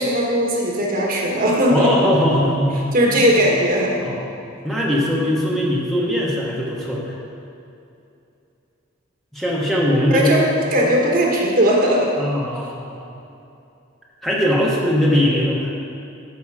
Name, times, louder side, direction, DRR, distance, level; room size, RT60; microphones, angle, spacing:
voice 1, 0.0-2.0 2.9-4.0 10.1-10.4 10.7-12.1, equal, 45° right, -2 dB, 1.5 m, -18 dB
voice 2, 1.7-2.9 3.2-3.3 4.0-4.3 4.6-7.1 9.3-10.3 10.8-10.9 12.2-13.0 14.2-15.7, equal, ahead, -5 dB, 1.2 m, -20 dB
13.0 x 5.3 x 4.9 m, 2.6 s
head